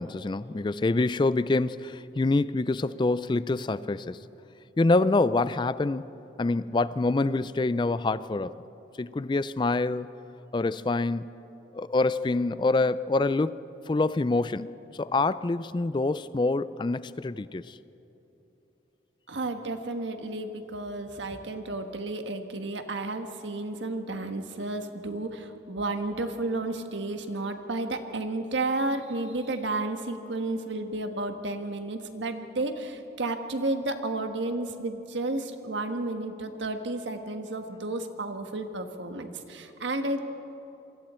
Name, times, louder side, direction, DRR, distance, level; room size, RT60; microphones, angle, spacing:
voice 1, 0.0-4.2 4.8-6.1 6.4-8.5 9.0-10.1 10.5-11.3 11.7-13.6 13.9-17.8, left 3 dB, 25° left, 0.4 m, -26 dB
voice 2, 19.3-40.2, right 2 dB, 90° right, 1.5 m, -32 dB
27.0 x 23.5 x 4.4 m
head